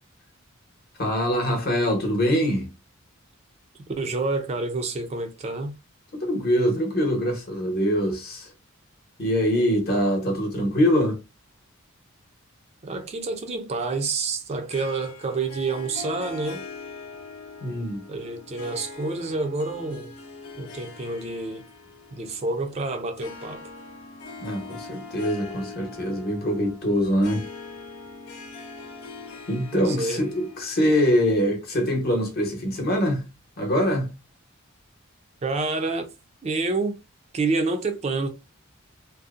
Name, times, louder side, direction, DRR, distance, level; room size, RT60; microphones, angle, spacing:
voice 1, 1.0-2.7 6.1-8.5 9.2-11.1 17.6-18.0 24.4-27.4 29.5-33.2 33.6-34.1, equal, 45° left, 0.9 m, -23 dB
voice 2, 4.0-5.7 12.8-16.6 18.1-20.1 20.6-21.6 22.1-23.7 29.7-30.3 35.4-36.1 36.4-37.0 37.3-38.3, right 3 dB, 30° right, 0.4 m, -28 dB
Harp, 14.7-31.5, left 4 dB, 85° left, 0.5 m, -42 dB
2.6 x 2.0 x 2.4 m
head